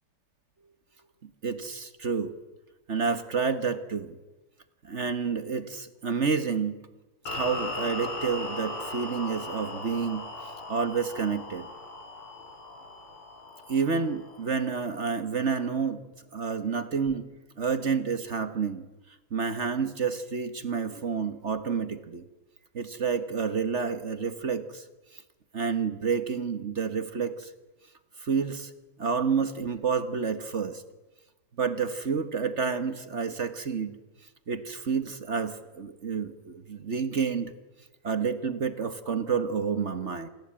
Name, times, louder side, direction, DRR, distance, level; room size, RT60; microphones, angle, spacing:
voice 1, 1.4-2.3 2.9-4.2 4.8-6.8 7.3-10.3 10.7-11.7 13.7-16.0 16.3-17.3 17.6-18.9 19.3-22.2 22.7-24.8 25.1-25.2 25.5-27.5 28.2-28.7 29.0-30.8 31.6-34.0 34.5-37.5 38.0-40.3, right 5 dB, 40° right, 11 dB, 1.3 m, -29 dB
sound 1, 7.3-14.4, left 2 dB, 90° left, 5.8 m, -38 dB
27.0 x 21.5 x 8.8 m, 1.1 s
omnidirectional pair, 2.4 m